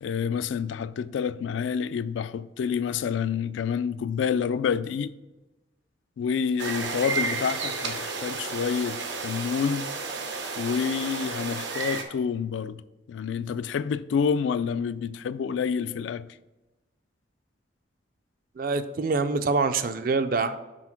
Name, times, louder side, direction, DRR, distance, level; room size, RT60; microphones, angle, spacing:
voice 1, 0.0-5.1 6.2-9.9 10.6-12.8 13.1-16.2, left 6 dB, 85° left, 0.3 m, -28 dB
sound 1, 6.6-12.0, right 4 dB, 75° right, 0.8 m, -32 dB
voice 2, 18.6-20.6, right 4 dB, 50° right, 0.4 m, -25 dB
6.2 x 4.4 x 5.8 m
head